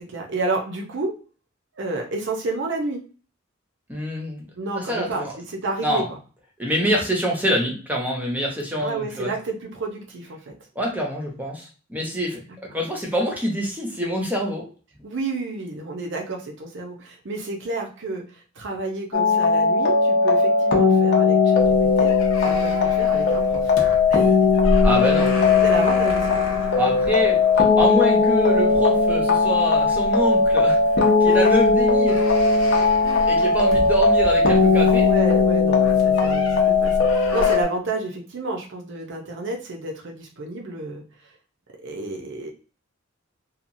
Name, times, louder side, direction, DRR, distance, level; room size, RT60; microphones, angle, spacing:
voice 1, 0.1-1.1 1.8-3.0 4.6-6.0 8.8-10.5 15.0-22.1 22.4-23.7 24.1-24.4 25.6-26.4 31.3-31.4 33.0-33.3 35.0-41.0 41.8-42.5, right 2 dB, 60° right, 1 dB, 0.7 m, -30 dB
voice 2, 3.9-4.4 4.8-5.3 5.8-6.1 6.6-9.3 10.8-12.4 12.7-14.7 24.8-25.3 26.7-32.2 33.3-35.1, equal, 10° right, -1 dB, 0.7 m, -25 dB
sound 1, 19.1-37.6, left 4 dB, 55° left, 0.6 m, -18 dB
sound 2, 21.6-37.6, left 1 dB, 90° left, 0.8 m, -32 dB
2.8 x 2.2 x 2.6 m, 0.39 s
head